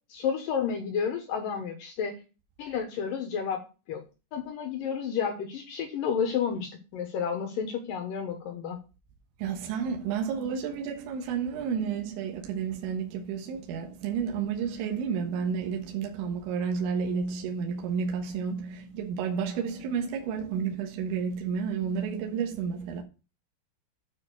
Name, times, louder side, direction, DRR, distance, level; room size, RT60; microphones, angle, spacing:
voice 1, 0.1-2.2 2.6-3.6 3.9-4.0 4.3-8.8, left 7 dB, 85° left, 1.9 m, -31 dB
voice 2, 9.4-23.0, right 6 dB, 75° right, 3.6 m, -31 dB
9.7 x 4.5 x 6.5 m
omnidirectional pair, 5.7 m